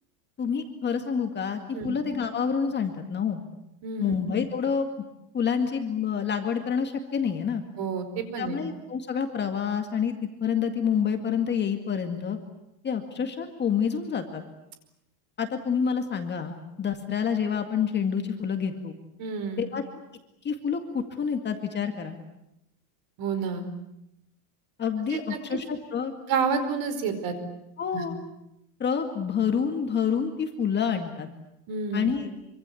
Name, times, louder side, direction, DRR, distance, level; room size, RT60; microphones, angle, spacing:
voice 1, 0.4-3.4 4.0-4.9 5.3-7.6 8.4-12.4 12.8-14.4 15.4-19.0 19.6-19.8 20.4-22.2 24.8-26.1 27.8-28.2 28.8-31.3 31.9-32.3, left 7 dB, 20° left, 6 dB, 2.1 m, -28 dB
voice 2, 3.8-4.2 7.8-8.6 19.2-19.7 23.2-23.6 25.1-25.4 26.3-27.3 27.9-28.0 31.7-32.1, right 5 dB, 45° right, 9 dB, 4.8 m, -29 dB
26.0 x 25.0 x 8.5 m, 0.84 s
supercardioid pair, 160°, 50 cm